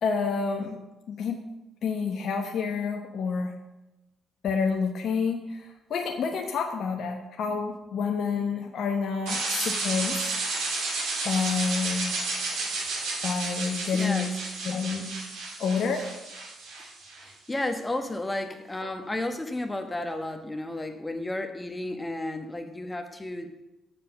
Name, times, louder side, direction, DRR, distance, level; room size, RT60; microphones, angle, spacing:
voice 1, 0.0-0.8 1.1-1.4 1.8-3.5 4.4-10.3 11.2-12.1 13.2-14.3 14.6-15.1 15.6-16.1, left 5 dB, 60° left, 3 dB, 0.9 m, -28 dB
sound 1, 9.3-17.3, right 3 dB, 75° right, 2.6 m, -32 dB
voice 2, 13.9-14.3 17.2-23.5, left 1 dB, 20° left, 6 dB, 1.1 m, -32 dB
7.5 x 7.1 x 6.9 m, 1.0 s
hypercardioid pair, 45°, 0 cm